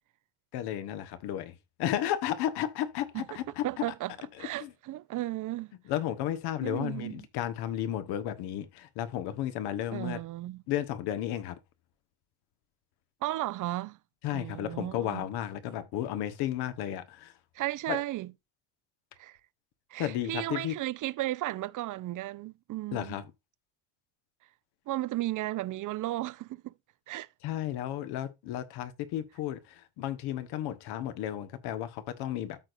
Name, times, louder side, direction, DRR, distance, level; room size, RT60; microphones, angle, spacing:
voice 1, 0.5-1.5 1.8-3.6 4.6-4.7 5.9-10.2 10.7-11.5 14.2-17.3 17.9-18.0 20.0-20.7 22.9-23.2 27.4-32.6, left 11 dB, 75° left, 1.5 m, -33 dB
voice 2, 3.6-4.1 4.4-5.7 6.6-7.3 9.9-10.6 13.2-14.0 14.3-15.2 17.5-18.3 19.2-19.4 19.9-23.2 24.9-26.7 27.1-27.3, right 16 dB, 50° right, 0.6 m, -34 dB
13.5 x 4.6 x 2.6 m
supercardioid pair, 95°, 39 cm